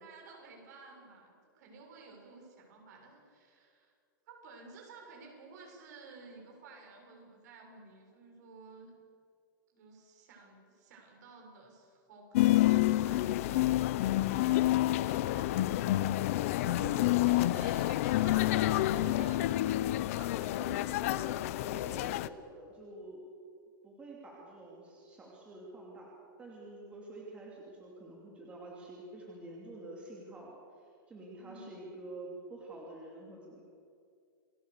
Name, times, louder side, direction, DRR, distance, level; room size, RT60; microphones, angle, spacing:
voice 1, 0.0-3.9 4.3-8.9 9.7-16.7 17.2-19.6 20.1-20.9 31.4-31.8, right 4 dB, 50° right, 1 dB, 7.1 m, -54 dB
sound 1, 12.3-22.3, left 15 dB, 40° left, 0.6 m, -28 dB
voice 2, 14.7-15.2 16.6-17.1 20.6-23.3 23.8-26.1 26.4-33.6, right 2 dB, 10° right, -3 dB, 2.7 m, -48 dB
29.0 x 20.5 x 6.8 m, 2.3 s
supercardioid pair, 180°, 11 cm